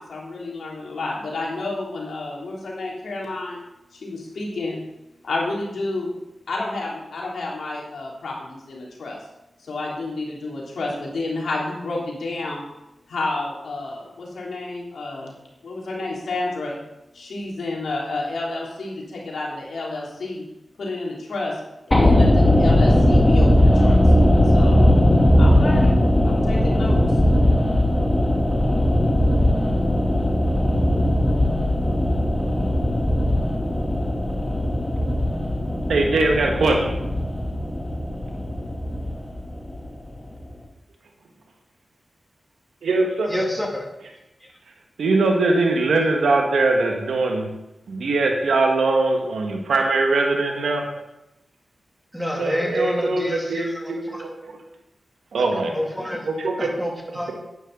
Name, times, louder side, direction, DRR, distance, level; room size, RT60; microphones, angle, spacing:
voice 1, 0.1-3.6 3.9-4.8 5.2-6.2 6.5-9.2 9.6-12.6 13.1-15.3 15.6-16.8 17.1-20.4 20.8-21.6 21.9-24.0 24.4-24.8 25.3-25.9 26.2-27.0, left 2 dB, 85° left, -3 dB, 3.2 m, -30 dB
sound 1, 21.9-40.1 40.4-40.5, left 1 dB, 20° left, 2.9 m, -18 dB
voice 2, 35.9-37.0 42.8-43.4 45.0-47.5 47.9-50.8 52.3-54.5 55.3-55.7 56.2-56.7, right 3 dB, 85° right, 2 dB, 1.7 m, -21 dB
voice 3, 43.3-43.8 52.1-53.9 55.7-56.3 56.6-57.3, left 1 dB, ahead, -1 dB, 2.8 m, -27 dB
10.5 x 9.8 x 4.0 m, 0.92 s
cardioid pair, 40°, 0 cm